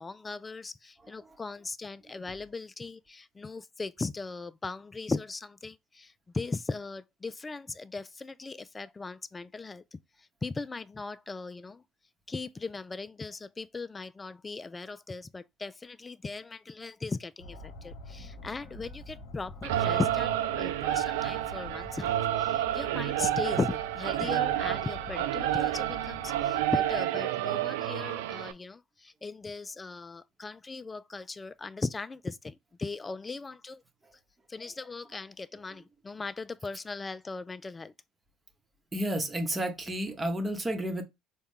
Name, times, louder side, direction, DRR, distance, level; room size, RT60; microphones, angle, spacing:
voice 1, 0.0-10.0 10.4-11.8 12.3-33.8 34.5-37.9, left 3 dB, 25° left, 0.3 m, -38 dB
sound 1, 17.4-27.0, left 1 dB, 80° left, 1.0 m, -46 dB
Singing / Musical instrument, 19.6-28.5, right 12 dB, 85° right, 0.3 m, -29 dB
voice 2, 38.9-41.0, right 1 dB, 20° right, 1.0 m, -31 dB
4.1 x 2.3 x 3.6 m
hypercardioid pair, 75°, 0 cm